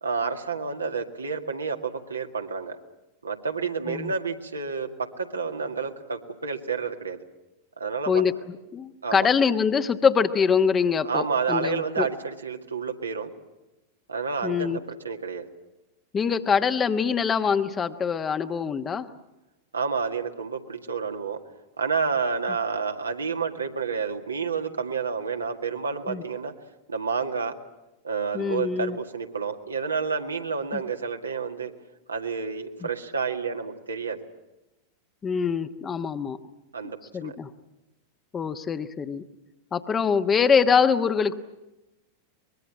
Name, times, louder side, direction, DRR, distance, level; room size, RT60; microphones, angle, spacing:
voice 1, 0.0-2.8 3.2-7.2 7.8-8.2 9.0-9.3 11.0-13.3 14.1-15.5 19.7-21.4 21.8-26.5 26.9-27.5 28.0-31.7 32.1-34.2 36.7-37.4, right 5 dB, 75° right, 4 dB, 1.9 m, -29 dB
voice 2, 8.7-12.1 14.4-14.8 16.1-19.1 26.1-26.2 28.3-29.0 30.7-30.8 35.2-36.4 37.1-37.5 38.3-39.2 39.7-41.4, left 6 dB, 20° left, 10 dB, 1.2 m, -24 dB
23.5 x 21.5 x 8.7 m, 0.99 s
figure-of-eight pair, 90°, 0 cm